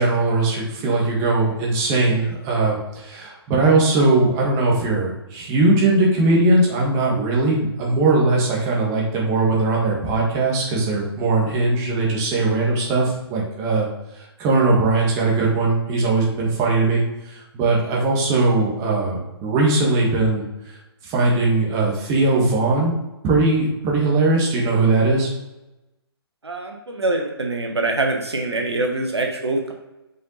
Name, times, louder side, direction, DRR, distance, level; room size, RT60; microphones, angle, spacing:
voice 1, 0.0-13.9 14.2-20.8 21.0-23.0 23.2-25.3, right 2 dB, 25° right, -2 dB, 1.7 m, -20 dB
voice 2, 26.4-29.7, right 2 dB, 80° right, 3 dB, 1.0 m, -24 dB
5.4 x 5.4 x 4.0 m, 0.98 s
figure-of-eight pair, 135°, 14 cm